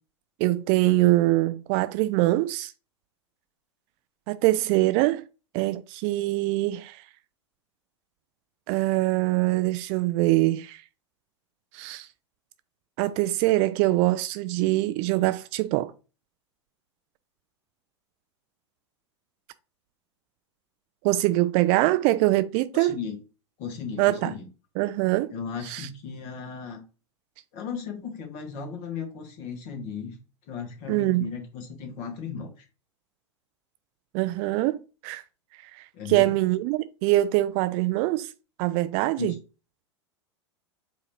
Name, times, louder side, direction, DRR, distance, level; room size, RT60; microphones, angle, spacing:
voice 1, 0.4-2.7 4.3-5.3 5.5-7.0 8.7-10.8 11.7-12.1 13.0-15.9 21.0-23.0 24.0-24.3 24.8-25.3 25.6-25.9 30.9-31.3 34.1-35.2 35.6-38.3 38.6-39.3, right 18 dB, 40° right, 0.4 m, -23 dB
voice 2, 22.7-23.2 23.6-24.4 25.3-26.8 27.5-30.2 30.5-32.6 35.9-36.3 39.2-39.3, left 6 dB, 45° left, 1.5 m, -36 dB
4.9 x 2.8 x 3.1 m
figure-of-eight pair, 90°, 15 cm